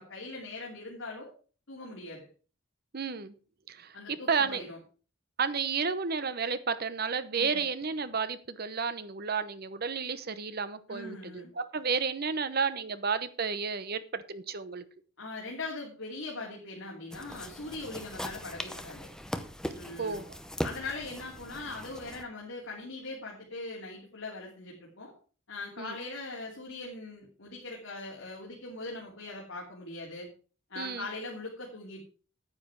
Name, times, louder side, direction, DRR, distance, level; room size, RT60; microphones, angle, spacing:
voice 1, 0.0-1.3 1.7-2.3 3.9-4.8 7.4-7.6 10.9-11.5 15.2-19.1 19.7-20.3 20.6-25.1 25.5-30.3 30.7-32.1, left 2 dB, 75° left, -3 dB, 2.9 m, -41 dB
voice 2, 2.9-3.3 3.7-4.6 5.4-14.8 20.0-20.3 25.8-25.9 30.8-31.1, right 5 dB, 50° right, 13 dB, 0.9 m, -32 dB
sound 1, 17.1-22.2, equal, 5° left, 0.8 m, -40 dB
9.7 x 9.3 x 4.7 m, 0.38 s
head